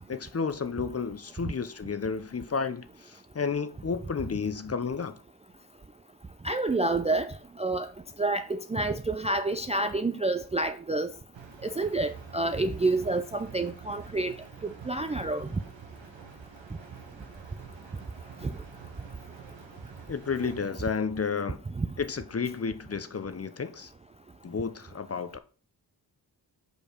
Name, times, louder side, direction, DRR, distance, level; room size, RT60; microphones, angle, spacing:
voice 1, 0.1-5.2 20.1-21.6 22.0-23.9 24.4-25.4, left 5 dB, 35° left, 0.6 m, -32 dB
voice 2, 6.4-7.3 7.6-7.9 8.2-11.1 11.6-14.3 14.6-15.5 18.4-18.5 21.8-21.9, right 2 dB, 15° right, 0.3 m, -28 dB
sound 1, 11.3-20.6, right 6 dB, 85° right, 1.3 m, -47 dB
5.3 x 4.7 x 4.9 m
cardioid pair, 50°, 44 cm